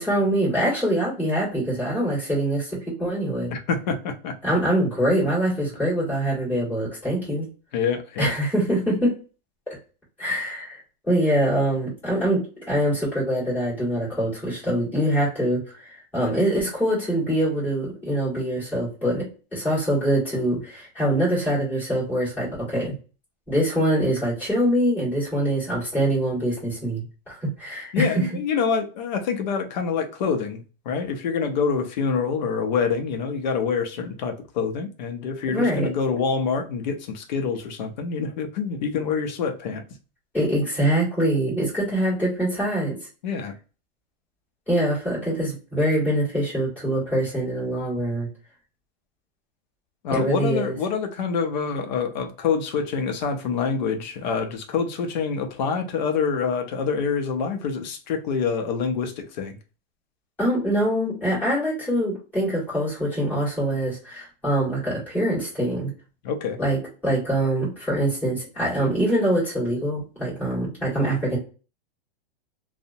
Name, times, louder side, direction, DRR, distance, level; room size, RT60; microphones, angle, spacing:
voice 1, 0.0-3.5 4.4-7.5 8.2-9.1 9.7-9.8 10.2-10.8 11.1-19.3 19.5-22.9 23.5-28.2 35.5-35.9 40.3-43.0 44.7-48.3 50.1-50.7 60.4-65.9 66.6-71.4, right 1 dB, 5° left, 1.5 m, -24 dB
voice 2, 3.5-4.5 7.7-8.3 27.9-39.8 43.2-43.5 50.0-59.6 66.2-66.6, left 5 dB, 45° left, 0.5 m, -26 dB
2.6 x 2.0 x 2.6 m
supercardioid pair, 160°, 30 cm